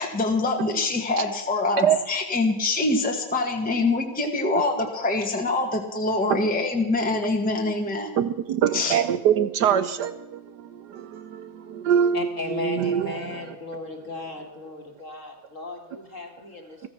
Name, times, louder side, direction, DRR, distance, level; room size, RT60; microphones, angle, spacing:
voice 1, 0.0-8.1 8.7-9.0, left 3 dB, 5° left, 1 dB, 1.5 m, -25 dB
voice 2, 8.2-13.5, right 8 dB, 70° right, 13 dB, 1.1 m, -24 dB
voice 3, 12.1-16.8, left 3 dB, 35° left, 2 dB, 2.2 m, -36 dB
15.0 x 14.5 x 6.0 m, 1.0 s
omnidirectional pair, 2.3 m